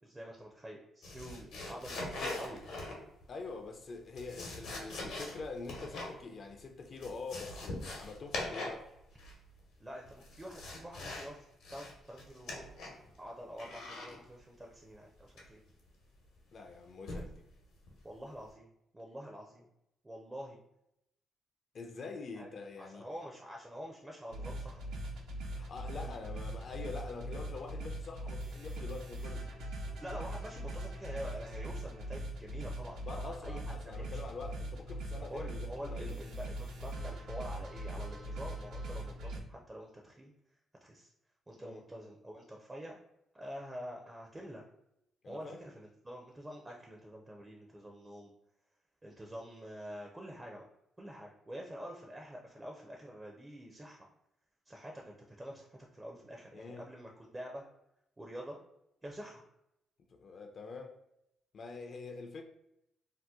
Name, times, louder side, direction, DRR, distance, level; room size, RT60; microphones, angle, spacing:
voice 1, 0.0-2.6 9.8-11.4 11.7-12.7 13.2-15.6 17.1-17.2 18.0-18.7 18.9-19.7 20.0-20.6 22.4-22.5 22.8-24.8 26.0-26.1 30.0-34.2 35.2-40.3 40.8-41.1 41.5-43.0 43.3-44.6 45.3-48.3 49.0-50.7 51.0-54.1 54.7-57.6 58.2-58.6 59.0-59.4, equal, 15° right, 0.5 m, -46 dB
sound 1, 1.0-3.2 4.0-6.2 6.5-6.6 6.9-8.9 9.1-9.6 10.1-11.3 11.6-13.1 13.6-14.2 15.4-15.7 17.1-17.4 17.9-18.1, left 2 dB, 80° left, 0.9 m, -42 dB
voice 2, 3.3-8.9 16.5-17.4 21.7-23.1 25.5-29.5 33.0-36.2 41.5-41.8 45.2-45.6 56.5-56.9 60.1-61.0 61.5-62.4, left 4 dB, 50° left, 0.4 m, -45 dB
sound 2, 24.3-39.4, right 1 dB, 80° right, 0.6 m, -41 dB
2.8 x 2.1 x 3.5 m
cardioid pair, 90°, 0 cm